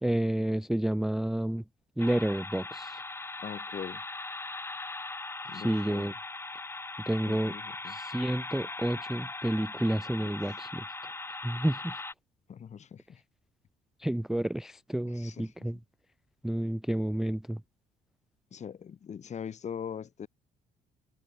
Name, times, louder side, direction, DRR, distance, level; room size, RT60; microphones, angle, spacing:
voice 1, 0.0-1.6 2.0-3.0 5.5-6.1 7.1-7.5 7.9-10.8 11.4-11.9 14.0-15.8 16.4-17.6, right 1 dB, ahead, 0.3 m, -30 dB
sound 1, 2.0-12.1, left 2 dB, 15° left, 2.1 m, -40 dB
voice 2, 3.4-4.0 5.4-6.1 7.3-8.0 10.2-10.6 12.5-13.2 15.0-15.5 18.5-20.3, left 7 dB, 45° left, 5.3 m, -42 dB
cardioid pair, 110°, 17 cm